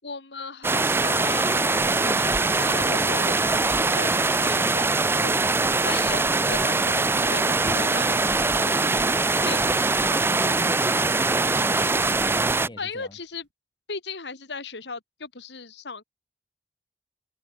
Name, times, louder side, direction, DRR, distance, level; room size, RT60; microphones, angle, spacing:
voice 1, 0.0-5.5 5.8-8.9 9.5-9.7 12.8-13.5 13.9-16.0, left 4 dB, 85° left, 2.3 m, -37 dB
sound 1, 0.6-12.7, right 3 dB, 15° right, 0.4 m, -22 dB
voice 2, 10.1-13.1, left 1 dB, 25° left, 1.3 m, -39 dB
sound 2, 12.6-13.5, right 1 dB, 90° right, 6.6 m, -52 dB
head